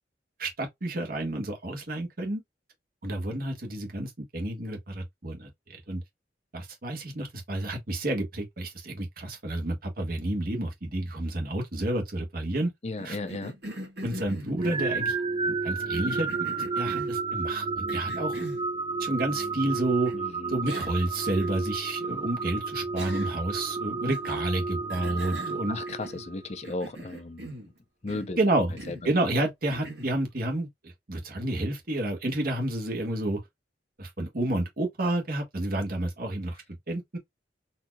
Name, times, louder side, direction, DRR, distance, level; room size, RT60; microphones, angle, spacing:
voice 1, 0.4-2.4 3.0-6.0 6.5-12.7 13.0-13.2 14.0-15.1 15.5-16.3 16.7-18.3 19.0-20.1 20.5-25.8 28.4-28.8 29.0-30.7 31.1-33.4 34.0-36.6 36.9-37.2, right 1 dB, 55° right, 1.4 m, -30 dB
voice 2, 12.8-13.6 20.1-20.5 25.7-27.5 28.0-28.4 28.9-29.0 29.3-29.5, left 2 dB, 40° left, 0.6 m, -35 dB
Cough, 13.0-15.2 15.9-17.2 17.9-18.7 20.1-20.2 20.7-21.0 21.4-21.5 23.0-23.5 24.1-24.5 24.9-26.3 26.6-27.7 28.1-28.4 28.8-29.1 29.7-30.2, right 1 dB, 70° right, 1.7 m, -41 dB
sound 1, 14.6-26.6, right 4 dB, 25° right, 0.4 m, -31 dB
4.2 x 2.8 x 2.2 m
head